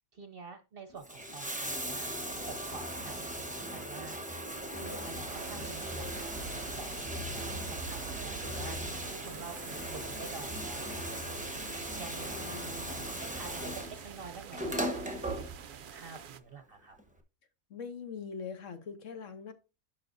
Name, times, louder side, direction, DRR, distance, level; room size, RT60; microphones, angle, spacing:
voice 1, 0.1-4.2 4.8-6.3 6.7-12.4 13.2-17.0, right 4 dB, 50° right, 0.8 m, -48 dB
Bathtub (filling or washing), 0.9-15.9 17.0-17.1, right 1 dB, 5° right, 0.8 m, -38 dB
sound 1, 5.3-16.4, right 7 dB, 80° right, 0.4 m, -47 dB
voice 2, 7.3-7.7 12.2-13.1 17.7-19.5, left 6 dB, 60° left, 1.2 m, -43 dB
11.0 x 6.0 x 2.6 m
omnidirectional pair, 1.5 m